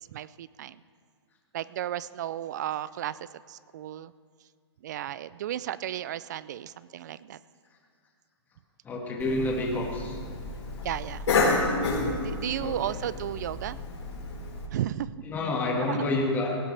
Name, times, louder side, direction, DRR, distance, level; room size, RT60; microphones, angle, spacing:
voice 1, 0.1-0.8 1.5-4.1 4.8-7.4 10.8-11.3 12.2-13.8 14.7-15.2 15.9-16.0, right 11 dB, 40° right, 18 dB, 0.4 m, -34 dB
voice 2, 8.8-10.2 12.6-13.0 15.3-16.6, left 2 dB, 10° left, -1 dB, 1.8 m, -29 dB
Cough, 9.2-14.7, left 3 dB, 80° left, 4.6 m, -30 dB
17.5 x 17.0 x 3.3 m, 2.1 s
hypercardioid pair, 160°, 14 cm